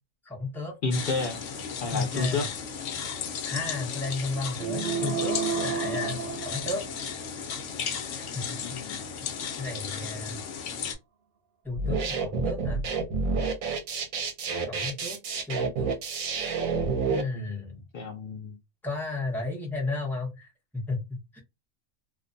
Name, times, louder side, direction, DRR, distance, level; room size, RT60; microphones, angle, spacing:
voice 1, 0.2-0.8 1.9-2.5 3.4-6.8 8.1-9.1 9.6-10.4 11.6-12.8 14.7-15.2 15.4-15.9 17.1-17.8 18.8-21.4, left 3 dB, ahead, 0.6 m, -33 dB
voice 2, 0.8-1.4 1.8-2.5 8.6-9.0 17.3-18.6, left 3 dB, 85° left, 0.4 m, -31 dB
sound 1, 0.9-10.9, left 7 dB, 65° left, 0.9 m, -35 dB
sound 2, 4.6-7.2, right 6 dB, 55° right, 0.7 m, -31 dB
sound 3, 11.7-17.2, right 4 dB, 80° right, 1.1 m, -29 dB
2.5 x 2.1 x 2.5 m
omnidirectional pair, 1.4 m